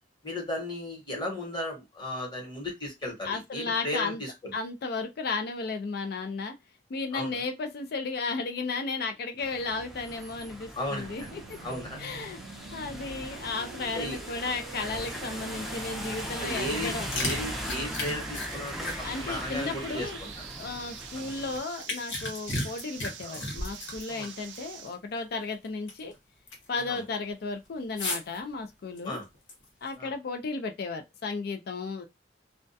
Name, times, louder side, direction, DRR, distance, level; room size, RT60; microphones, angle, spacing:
voice 1, 0.2-4.5 7.1-7.4 10.7-11.1 11.6-12.0 13.9-14.2 16.4-20.5 21.1-21.3 23.2-23.4 24.1-24.3 26.9-27.0 29.0-29.3 30.0-30.1, left 1 dB, 25° left, 1.0 m, -35 dB
voice 2, 3.2-4.2 4.5-6.5 6.9-11.6 12.0-12.4 12.7-17.1 19.0-20.2 20.6-26.1 26.7-29.2 29.8-32.0, left 4 dB, 55° left, 0.4 m, -34 dB
sound 1, 9.4-21.6, equal, ahead, 0.5 m, -39 dB
sound 2, 11.0-25.0, right 6 dB, 70° right, 0.4 m, -45 dB
sound 3, 16.7-20.6 21.1-24.6 24.9-25.0 25.5-26.1 26.5-26.8 28.0-28.4 29.0-29.9, left 2 dB, 85° left, 1.0 m, -35 dB
2.3 x 2.1 x 2.6 m
head